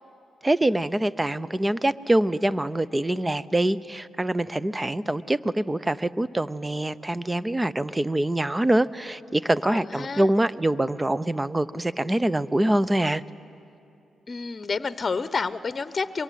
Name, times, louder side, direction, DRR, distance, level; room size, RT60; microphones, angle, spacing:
voice 1, 0.4-13.2, right 1 dB, 20° right, 16 dB, 0.8 m, -24 dB
voice 2, 9.6-10.3 14.3-16.2, left 4 dB, 45° left, 14 dB, 0.8 m, -29 dB
23.5 x 22.0 x 9.4 m, 2.8 s
supercardioid pair, 45°, 0 cm